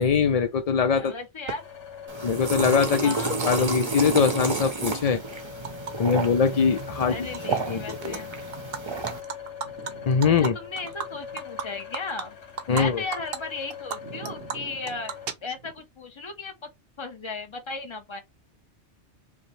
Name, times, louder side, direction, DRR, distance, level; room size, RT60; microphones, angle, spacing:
voice 1, 0.0-1.1 2.2-3.1 3.4-5.2 6.0-7.3 7.7-8.2 10.1-10.6 12.7-13.0, left 6 dB, 65° left, 0.3 m, -22 dB
voice 2, 0.9-1.7 3.0-3.7 7.1-8.3 10.2-12.4 12.7-15.1 15.4-16.7 17.0-18.2, left 3 dB, 30° left, 0.7 m, -36 dB
sound 1, 1.5-15.3, left 8 dB, 85° left, 1.3 m, -42 dB
Animal, 1.5-1.6 2.6-2.7 3.0-3.8 4.2-5.9 6.2-6.5 6.8-7.6 7.9-8.2 8.5-12.8 13.1-13.4 13.7-15.8, right 6 dB, 60° right, 0.8 m, -36 dB
sound 2, 2.1-9.2, right 3 dB, 30° right, 0.6 m, -31 dB
5.2 x 2.1 x 3.1 m
omnidirectional pair, 1.2 m